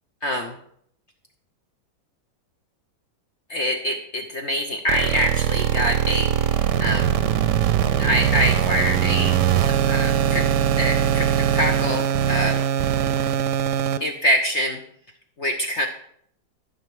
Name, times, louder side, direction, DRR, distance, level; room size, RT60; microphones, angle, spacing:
voice 1, 0.2-0.6 3.5-7.2 8.0-9.4 9.9-10.4 10.8-12.6 14.0-14.8 15.4-15.9, equal, 50° left, 3 dB, 0.8 m, -25 dB
sound 1, 4.9-14.0, right 9 dB, 70° right, 1.1 m, -21 dB
13.0 x 6.5 x 4.9 m, 0.67 s
omnidirectional pair, 2.1 m